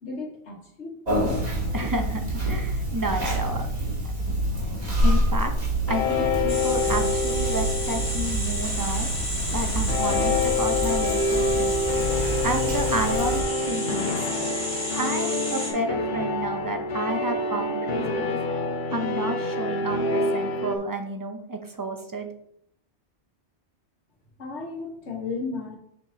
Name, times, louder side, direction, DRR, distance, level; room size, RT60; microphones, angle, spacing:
voice 1, 0.0-1.4 24.4-25.8, left 3 dB, 80° left, 1 dB, 1.7 m, -34 dB
Conversation, 1.1-13.4, right 1 dB, 35° right, 2.1 m, -27 dB
voice 2, 1.7-3.7 5.0-5.5 5.9-9.1 9.5-11.7 12.4-14.3 14.9-18.4 18.9-22.3, right 2 dB, 20° right, 5 dB, 0.7 m, -30 dB
sound 1, 5.9-9.0 9.9-20.8, left 3 dB, 50° left, 0.7 m, -27 dB
sound 2, 6.5-15.7, equal, 5° left, 2.3 m, -32 dB
7.2 x 6.2 x 2.8 m, 0.72 s
omnidirectional pair, 1.1 m